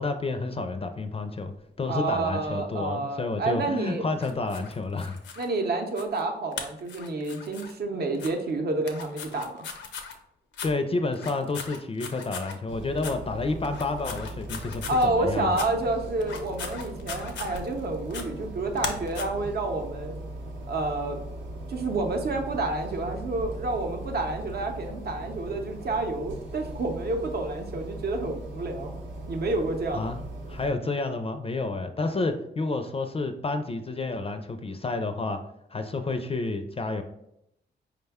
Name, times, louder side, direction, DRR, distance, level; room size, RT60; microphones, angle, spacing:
voice 1, 0.0-1.5 1.8-5.2 10.6-15.6 29.9-30.2 30.5-35.4 35.7-37.0, left 3 dB, 30° left, 8 dB, 0.4 m, -30 dB
voice 2, 1.9-4.0 5.4-9.6 14.9-20.2 20.7-21.2 21.7-29.0 29.3-30.1, right 2 dB, 60° right, 4 dB, 0.7 m, -29 dB
sound 1, 4.2-5.5 6.0-6.2 6.5-7.7 8.1-8.3 8.8-10.2 10.5-10.7 11.1-12.6 13.0-13.2 13.6-15.1 15.5-15.7 16.2-17.8 18.1-18.3 18.8-19.2, left 6 dB, 90° left, 0.5 m, -38 dB
sound 2, 12.7-30.7, right 1 dB, 90° right, 0.8 m, -39 dB
4.7 x 2.2 x 3.4 m, 0.79 s
cardioid pair, 75°, 19 cm